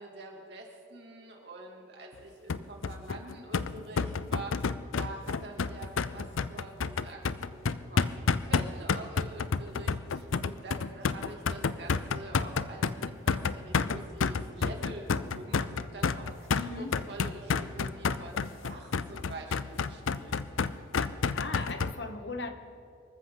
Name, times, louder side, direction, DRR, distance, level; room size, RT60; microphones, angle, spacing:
voice 1, 0.0-4.6 4.9-20.3, right 2 dB, 55° right, 0 dB, 2.6 m, -46 dB
sound 1, 2.5-21.9, left 5 dB, 90° left, 0.5 m, -30 dB
voice 2, 16.5-17.1 21.3-22.5, left 3 dB, 60° left, 7 dB, 1.1 m, -38 dB
25.0 x 14.5 x 3.9 m, 2.5 s
head